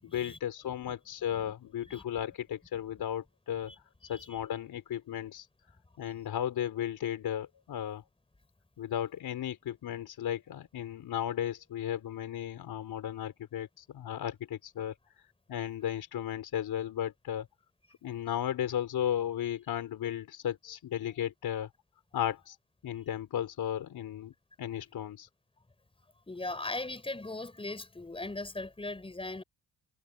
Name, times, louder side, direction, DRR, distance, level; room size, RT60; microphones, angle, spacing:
voice 1, 0.0-5.5 6.0-8.0 8.8-17.5 18.0-21.7 22.1-22.6 22.8-24.3 24.6-25.3, left 10 dB, 65° left, 3.8 m, -35 dB
voice 2, 4.0-4.4 26.3-29.4, left 2 dB, 15° left, 6.5 m, -39 dB
cardioid pair, 130°, 39 cm